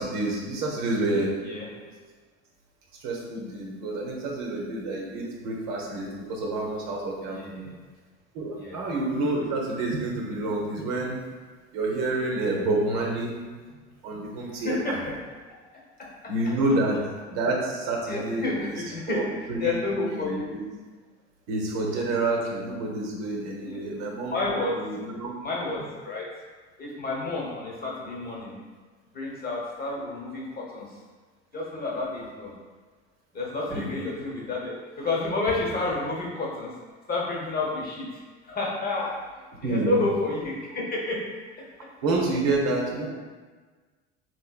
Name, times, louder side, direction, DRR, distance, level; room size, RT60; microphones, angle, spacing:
voice 1, 0.0-1.9 3.0-7.6 8.3-11.2 11.7-13.4 14.0-15.0 16.3-17.0 17.3-20.6 21.5-24.4 24.8-25.3 33.7-33.9 39.6-40.0 42.0-43.1, right 2 dB, 65° right, -1 dB, 0.9 m, -28 dB
voice 2, 7.2-7.8 8.5-8.8 14.5-15.1 18.1-20.4 23.7-23.8 24.3-24.7 25.4-26.2 26.8-28.6 29.1-30.9 31.5-32.5 33.3-36.7 37.1-38.1 38.4-39.1 39.6-41.2, left 2 dB, 25° left, -3 dB, 1.0 m, -30 dB
3.1 x 3.0 x 2.3 m, 1.4 s
hypercardioid pair, 80°, 36 cm